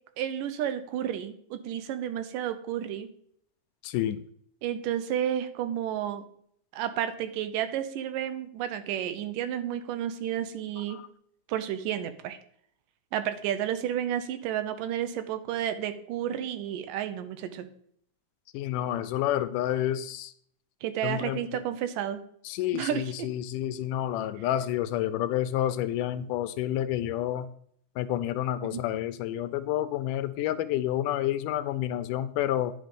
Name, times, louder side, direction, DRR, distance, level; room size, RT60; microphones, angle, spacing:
voice 1, 0.2-3.1 4.6-6.2 6.7-11.0 11.5-12.4 13.1-17.7 20.8-22.2 22.7-23.3 28.6-28.8, right 10 dB, 85° right, 10 dB, 2.4 m, -31 dB
voice 2, 3.8-4.2 10.9-11.0 18.5-20.3 21.0-21.4 22.5-27.5 28.0-32.7, left 12 dB, 80° left, 12 dB, 2.0 m, -29 dB
10.0 x 5.2 x 5.2 m, 0.65 s
omnidirectional pair, 3.8 m